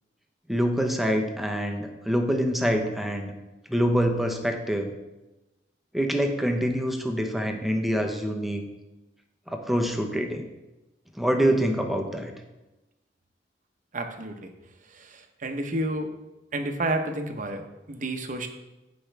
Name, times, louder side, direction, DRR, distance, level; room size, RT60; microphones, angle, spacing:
voice 1, 0.5-3.3 3.7-4.9 5.9-8.6 9.5-10.4 11.2-12.3, equal, ahead, 3 dB, 1.0 m, -25 dB
voice 2, 13.9-14.5 14.8-16.1 16.5-18.5, right 1 dB, 45° right, 5 dB, 1.0 m, -31 dB
15.0 x 5.3 x 3.4 m, 1.0 s
head